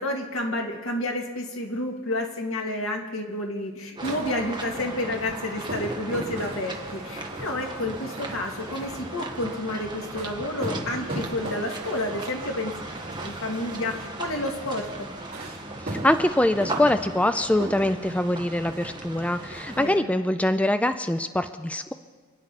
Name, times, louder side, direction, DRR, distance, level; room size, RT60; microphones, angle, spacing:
voice 1, 0.0-12.7 13.2-15.1 19.8-20.1, left 1 dB, 75° left, 1 dB, 2.1 m, -30 dB
sound 1, 4.0-19.9, right 2 dB, 20° right, 1.6 m, -38 dB
sound 2, 4.0-19.8, right 1 dB, 45° right, 4.6 m, -39 dB
voice 2, 15.8-21.9, left 1 dB, 5° left, 10 dB, 0.4 m, -24 dB
28.5 x 10.0 x 4.2 m, 1.6 s
head